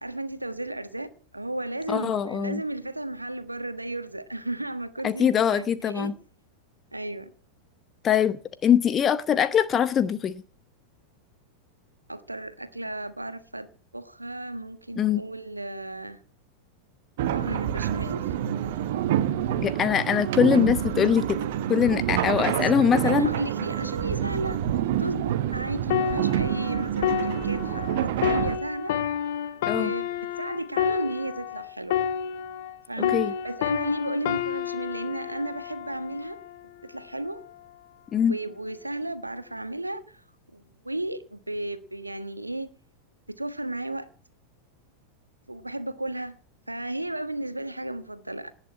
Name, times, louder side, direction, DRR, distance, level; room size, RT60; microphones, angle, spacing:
voice 1, 0.0-6.1 6.9-7.3 12.1-16.2 17.3-18.3 22.5-22.8 23.0-29.0 29.5-32.0 32.9-36.4 36.8-37.4 38.3-40.2 40.5-42.7 43.3-44.1 45.5-46.4 46.7-48.5, right 1 dB, 85° right, 1.4 m, -34 dB
voice 2, 1.9-2.6 5.0-6.1 8.0-10.4 15.0-15.2 19.6-21.4 21.7-23.3 29.7-29.9 33.1-33.3 38.1-38.3, left 8 dB, 25° left, 0.9 m, -22 dB
sound 1, 17.2-28.6, right 10 dB, 55° right, 1.4 m, -27 dB
sound 2, 25.9-32.8 33.0-36.6 37.3-37.5, left 9 dB, 55° left, 1.3 m, -29 dB
18.5 x 6.6 x 9.7 m
figure-of-eight pair, 90°, 0 cm